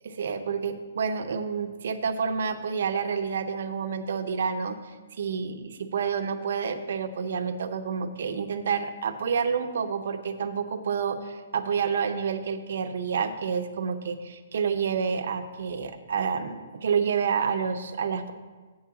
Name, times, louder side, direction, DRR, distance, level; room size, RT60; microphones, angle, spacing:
voice 1, 0.2-4.8 5.2-18.3, right 6 dB, 60° right, 8 dB, 0.7 m, -29 dB
7.8 x 4.8 x 7.0 m, 1.4 s
hypercardioid pair, 170°, 0 cm